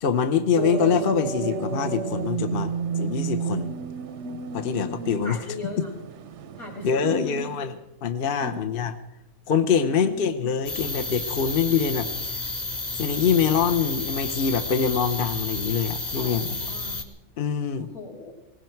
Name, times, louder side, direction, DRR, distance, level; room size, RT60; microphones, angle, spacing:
voice 1, 0.0-3.7 4.5-5.4 6.8-7.7 8.0-8.9 9.5-12.3 12.9-16.6 17.4-17.9, left 7 dB, 45° left, 8 dB, 0.8 m, -24 dB
sound 1, 0.5-7.1, right 6 dB, 60° right, 0.8 m, -31 dB
voice 2, 5.2-6.0 6.6-7.5 8.4-8.6 9.7-10.4 16.2-17.0 17.8-18.3, left 1 dB, 65° left, -1 dB, 4.8 m, -37 dB
sound 2, 10.7-17.0, left 2 dB, 30° left, 1.7 m, -31 dB
19.0 x 16.0 x 4.6 m, 0.89 s
omnidirectional pair, 1.6 m